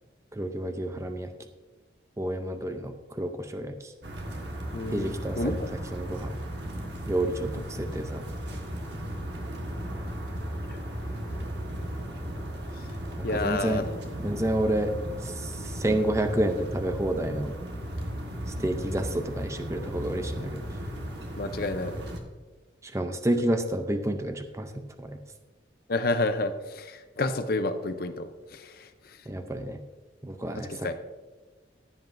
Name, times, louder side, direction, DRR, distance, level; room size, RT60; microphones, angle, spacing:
voice 1, 0.3-1.3 2.2-3.9 4.9-5.6 5.9-6.3 7.1-8.2 13.3-13.9 14.2-14.9 15.2-17.5 18.6-20.6 22.9-25.2 29.3-29.8 30.2-30.9, right 1 dB, 15° right, 7 dB, 0.5 m, -29 dB
sound 1, 4.0-22.2, equal, 60° right, 1.3 m, -36 dB
voice 2, 4.7-5.7 7.6-7.7 13.2-13.8 21.4-21.9 25.9-28.9 30.7-30.9, left 2 dB, 50° left, 9 dB, 0.6 m, -30 dB
15.0 x 7.6 x 2.6 m, 1.3 s
head